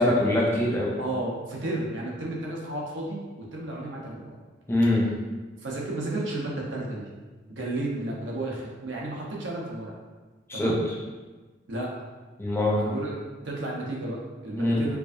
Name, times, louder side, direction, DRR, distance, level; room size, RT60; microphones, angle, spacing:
voice 1, 0.0-0.9 4.7-5.1 10.5-10.7 12.4-12.8 14.6-14.8, left 1 dB, 15° left, -4 dB, 0.5 m, -23 dB
voice 2, 1.0-4.4 5.6-7.1 7.5-10.0 10.5-10.8 11.7-11.9 12.7-13.1 13.4-15.0, right 2 dB, 85° right, -3 dB, 0.8 m, -32 dB
4.6 x 2.5 x 2.6 m, 1.3 s
head